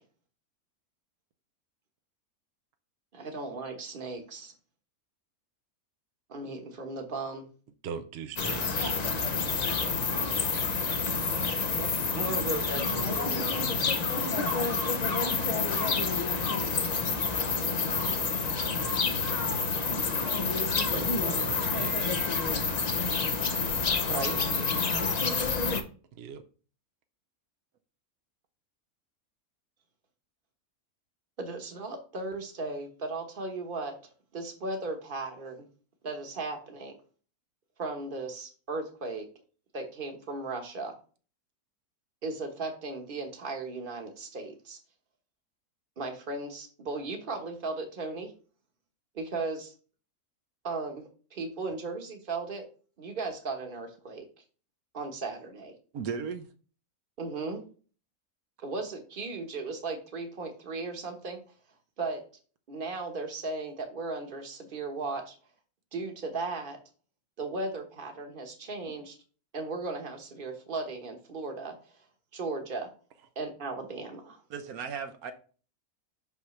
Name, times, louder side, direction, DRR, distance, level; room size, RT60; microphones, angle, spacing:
voice 1, 3.1-4.5 6.3-7.5 11.7-13.6 24.1-24.6 31.4-33.9 34.3-35.6 36.0-36.9 37.8-39.3 39.7-40.9 42.2-44.8 46.0-48.3 49.1-49.7 50.6-51.0 51.3-52.6 53.0-54.3 54.9-55.7 57.2-57.6 58.6-61.4 62.0-62.2 62.7-65.3 65.9-66.8 67.4-69.2 69.5-71.7 72.3-72.9 73.4-74.4, right 3 dB, 40° right, 1.2 m, -36 dB
voice 2, 7.8-8.9 20.9-22.2 26.2-26.4, right 7 dB, 60° right, 0.7 m, -40 dB
sound 1, 8.4-25.8, left 4 dB, 45° left, 0.5 m, -28 dB
voice 3, 55.9-56.5 74.5-75.3, right 6 dB, 75° right, 1.2 m, -35 dB
5.9 x 5.7 x 3.2 m
omnidirectional pair, 1.6 m